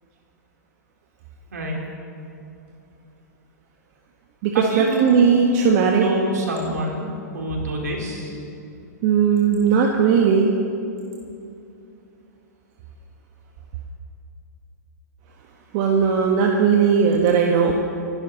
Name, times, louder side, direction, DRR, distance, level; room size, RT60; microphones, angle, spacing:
voice 1, 1.5-1.8 4.5-8.4, right 1 dB, 70° right, -1 dB, 3.9 m, -27 dB
voice 2, 4.4-6.0 9.0-10.5 15.7-17.7, right 6 dB, 45° right, 1 dB, 1.4 m, -18 dB
28.0 x 12.0 x 4.1 m, 2.6 s
figure-of-eight pair, 105°, 9 cm